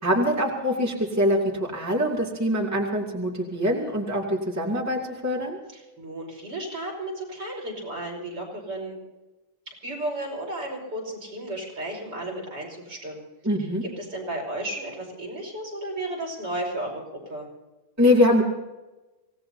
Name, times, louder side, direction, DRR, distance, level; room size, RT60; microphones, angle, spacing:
voice 1, 0.0-5.6 13.4-13.8 18.0-18.4, left 1 dB, 10° right, -2 dB, 2.6 m, -23 dB
voice 2, 5.7-9.0 9.8-13.3 14.0-17.5, right 1 dB, 60° right, -2 dB, 6.1 m, -33 dB
26.0 x 18.0 x 2.8 m, 1.1 s
omnidirectional pair, 2.1 m